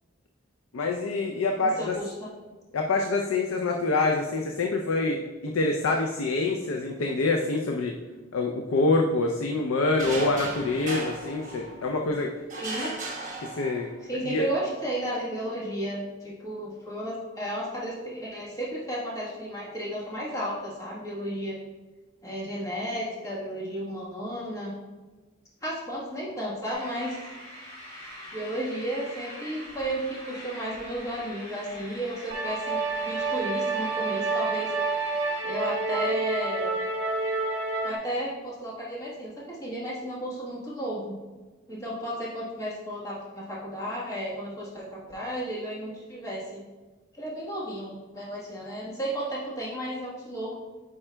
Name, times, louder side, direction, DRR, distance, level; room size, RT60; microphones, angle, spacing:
voice 1, 0.7-2.0 2.7-7.9 8.3-12.3 13.4-13.9 14.2-14.5, left 3 dB, 90° left, 2 dB, 0.5 m, -26 dB
voice 2, 1.6-2.3 12.6-12.9 14.0-21.6 22.2-24.7 25.6-27.4 27.9-34.7 35.4-36.8 37.8-41.1 41.7-46.6 47.2-50.5, right 1 dB, 15° left, -6 dB, 1.2 m, -33 dB
sound 1, 10.0-12.0 12.5-14.1, right 2 dB, 35° right, 1.1 m, -36 dB
sound 2, 26.7-35.4, equal, 30° left, 1.8 m, -44 dB
High Drone Short, 32.3-38.0, right 3 dB, 55° right, 0.9 m, -28 dB
8.7 x 4.8 x 2.2 m, 1.3 s
head